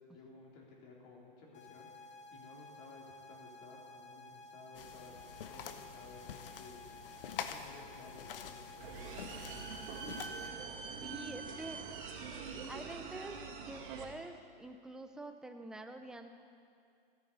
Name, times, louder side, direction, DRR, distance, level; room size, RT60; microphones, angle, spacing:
voice 1, 0.1-6.8 7.4-10.2, left 3 dB, 45° left, -2 dB, 3.9 m, -56 dB
sound 1, 1.5-10.5, left 1 dB, 25° left, 1.4 m, -54 dB
sound 2, 4.7-10.5, left 8 dB, 70° left, 1.0 m, -47 dB
sound 3, 8.8-14.0, right 5 dB, 60° right, 2.6 m, -44 dB
voice 2, 11.0-12.1 12.7-13.4 13.7-16.3, right 2 dB, ahead, 6 dB, 0.5 m, -47 dB
14.5 x 13.0 x 5.4 m, 2.4 s
hypercardioid pair, 140°, 29 cm